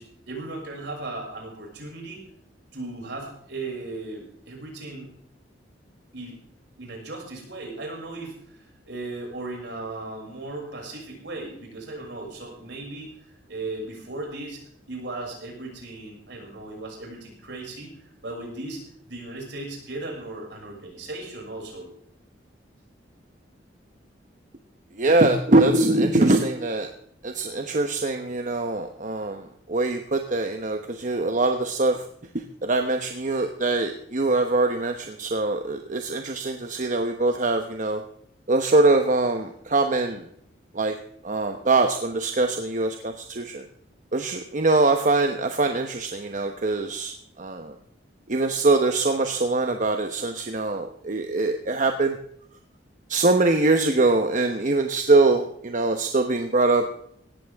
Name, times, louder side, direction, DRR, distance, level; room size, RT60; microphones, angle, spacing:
voice 1, 0.0-2.2 2.7-5.1 6.1-6.4 6.8-8.6 8.8-21.9, right 2 dB, 70° right, -1 dB, 6.7 m, -37 dB
voice 2, 25.0-26.9 27.2-32.0 32.3-38.0 38.5-40.3 40.7-40.9 41.2-43.6 44.1-47.7 48.3-52.2 53.1-56.9, right 2 dB, 45° right, 6 dB, 1.1 m, -23 dB
18.0 x 14.5 x 3.6 m, 0.67 s
head